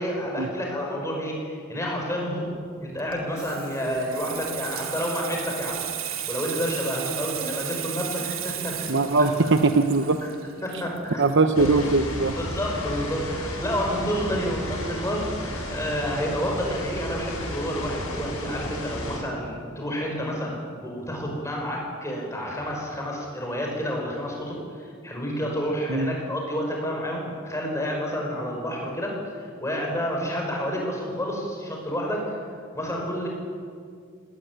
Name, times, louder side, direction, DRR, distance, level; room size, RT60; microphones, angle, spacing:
voice 1, 0.0-2.5 2.8-5.8 6.3-9.5 10.6-11.2 11.6-11.7 12.4-29.2 29.6-32.3 32.7-33.3, equal, 15° left, 0 dB, 5.5 m, -29 dB
Water tap faucet / Sink (filling or washing), 3.0-12.3 12.6-12.8, right 10 dB, 80° right, 2.4 m, -35 dB
voice 2, 8.9-10.2 11.2-12.3 25.9-26.1, right 3 dB, 55° right, 8 dB, 0.9 m, -21 dB
sound 1, 11.5-19.2, left 1 dB, 80° left, 7.6 m, -33 dB
18.5 x 18.5 x 9.4 m, 2.1 s
head